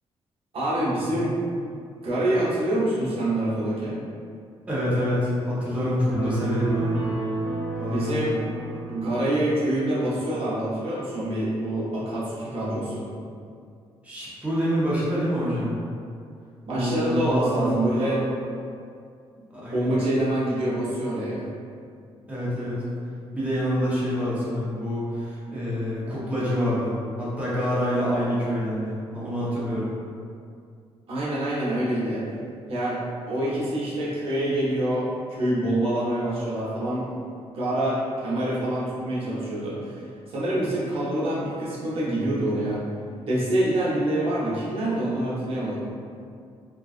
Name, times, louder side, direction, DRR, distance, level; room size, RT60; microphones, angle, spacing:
voice 1, 0.5-1.3 2.0-3.9 7.9-8.4 8.9-13.1 16.6-18.2 19.7-21.5 31.1-32.3 32.7-33.0 33.3-37.2 37.5-42.8 43.3-45.8, right 1 dB, 65° right, -8 dB, 0.7 m, -26 dB
voice 2, 4.7-7.0 7.8-8.2 14.0-15.7 16.7-18.2 19.5-19.9 22.3-22.8 23.3-29.9, equal, 15° right, -9 dB, 0.7 m, -26 dB
sound 1, 6.1-9.6, right 3 dB, 10° left, 1.0 m, -31 dB
2.4 x 2.3 x 2.4 m, 2.3 s
cardioid pair, 105°, 11 cm